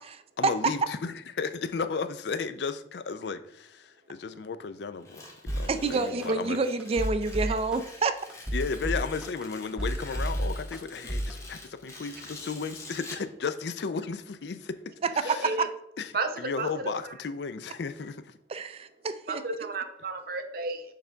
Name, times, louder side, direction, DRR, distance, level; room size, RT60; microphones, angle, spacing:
voice 1, 0.4-6.6 8.5-15.5 16.0-16.1 16.4-18.3, left 5 dB, 70° left, 0.4 m, -34 dB
Tearing, 5.0-13.3, left 2 dB, 15° left, 1.0 m, -47 dB
sound 1, 5.5-5.6 6.2-6.3 6.8-7.8 8.3-9.4 9.8-10.8 11.1-11.3, right 1 dB, 5° right, 0.7 m, -30 dB
voice 2, 5.7-8.2 15.0-15.4 18.5-19.4, right 4 dB, 35° right, 0.3 m, -28 dB
voice 3, 15.2-15.7 16.1-16.9 19.3-20.9, right 3 dB, 55° right, 0.7 m, -33 dB
6.6 x 5.0 x 3.5 m
head